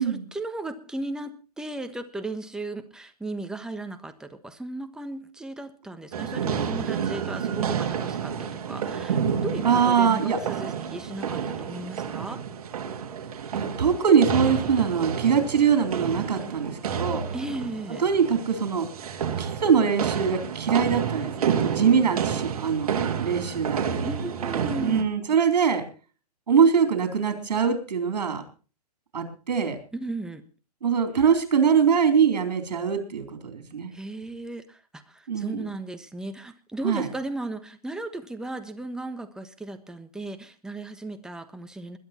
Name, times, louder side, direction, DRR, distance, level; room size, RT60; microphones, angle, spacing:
voice 1, 0.0-12.4 17.3-18.0 24.0-25.1 29.9-30.4 33.9-42.0, right 2 dB, 5° right, 8 dB, 1.3 m, -36 dB
sound 1, 6.1-25.0, right 7 dB, 60° right, 2.9 m, -30 dB
voice 2, 9.6-10.4 13.5-17.2 18.0-18.9 19.4-23.8 24.8-25.8 26.5-28.4 29.1-29.8 30.8-33.9 35.3-35.7 36.8-37.1, right 6 dB, 85° right, 6 dB, 3.8 m, -23 dB
21.5 x 10.5 x 4.4 m, 0.37 s
hypercardioid pair, 145°, 21 cm